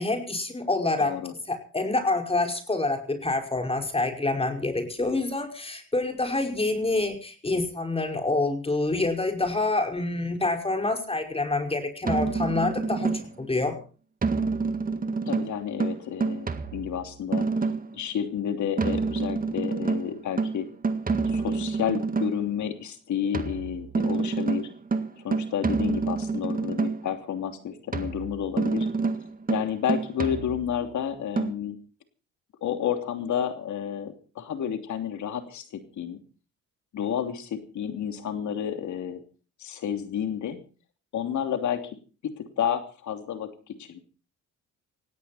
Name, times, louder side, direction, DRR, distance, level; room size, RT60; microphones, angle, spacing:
voice 1, 0.0-1.2 1.5-13.8, left 2 dB, 20° left, 4 dB, 5.3 m, -27 dB
voice 2, 1.0-1.3 15.2-17.5 17.9-20.7 21.2-24.7 25.2-28.9 29.5-31.8 32.6-36.2 36.9-39.2 39.6-40.6 41.1-41.8 42.2-44.0, left 9 dB, 70° left, 7 dB, 3.1 m, -30 dB
sound 1, 12.0-13.5 14.2-18.0 18.8-22.5 23.3-27.2 27.9-30.9 31.4-31.5, right 4 dB, 30° right, 1.9 m, -28 dB
18.5 x 17.0 x 4.3 m, 0.38 s
cardioid pair, 90°, 30 cm